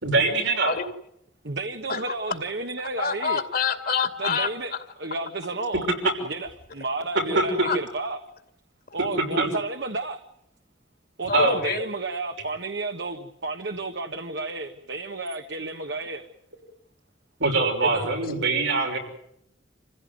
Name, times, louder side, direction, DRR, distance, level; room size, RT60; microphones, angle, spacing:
voice 1, 0.0-0.7 7.3-7.4 9.4-9.5 11.3-11.6 17.4-19.0, right 3 dB, 85° right, 2 dB, 6.0 m, -23 dB
voice 2, 1.4-3.4 4.2-4.7 5.0-5.9 6.2-8.2 8.9-10.2 11.2-16.2 17.8-18.1, right 3 dB, 70° right, 6 dB, 1.5 m, -31 dB
voice 3, 3.0-4.8 7.6-7.8 11.3-11.9 18.2-18.3, left 5 dB, 55° left, 8 dB, 2.4 m, -26 dB
27.5 x 16.0 x 9.5 m, 0.77 s
head